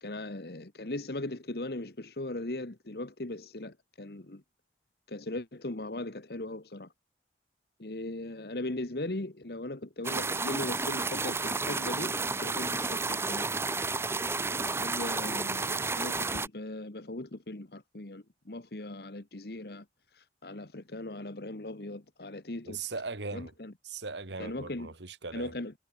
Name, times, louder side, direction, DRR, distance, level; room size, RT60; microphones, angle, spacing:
voice 1, 0.0-4.4 5.1-6.9 7.8-13.5 14.5-19.8 20.1-22.8 23.3-23.7 24.4-24.9 25.3-25.7, left 2 dB, 60° left, 1.4 m, -39 dB
sound 1, 10.0-16.5, right 3 dB, 15° right, 0.7 m, -31 dB
voice 2, 22.7-23.5 23.8-25.5, right 4 dB, 85° right, 2.0 m, -39 dB
head